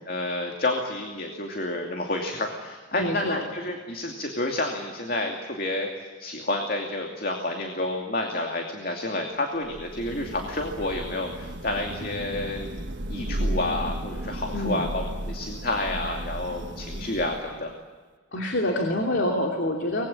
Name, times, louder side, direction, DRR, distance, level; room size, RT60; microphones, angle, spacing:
voice 1, 0.1-12.7 13.1-17.7, left 2 dB, 50° left, 2 dB, 2.6 m, -30 dB
voice 2, 2.9-3.4 14.5-14.9 18.3-20.1, left 1 dB, 65° left, 1 dB, 2.7 m, -26 dB
Thunder / Rain, 9.6-17.7, right 1 dB, 65° right, 1.6 m, -34 dB
25.0 x 20.5 x 8.7 m, 1.4 s
head